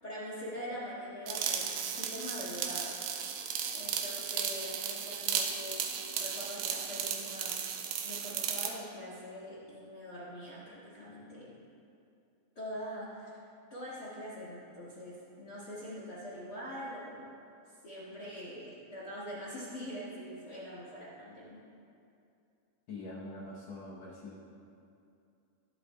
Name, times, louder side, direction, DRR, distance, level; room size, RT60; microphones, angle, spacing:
voice 1, 0.0-3.0 3.3-3.4 3.7-5.9 6.2-7.6 8.0-11.6 12.5-13.4 13.7-17.3 17.8-21.6, equal, 45° left, -8 dB, 1.4 m, -43 dB
sound 1, 1.3-8.8, right 8 dB, 80° right, 2.2 m, -35 dB
voice 2, 22.9-24.5, left 2 dB, 80° left, -5 dB, 1.5 m, -44 dB
21.0 x 7.9 x 2.2 m, 2.6 s
omnidirectional pair, 4.3 m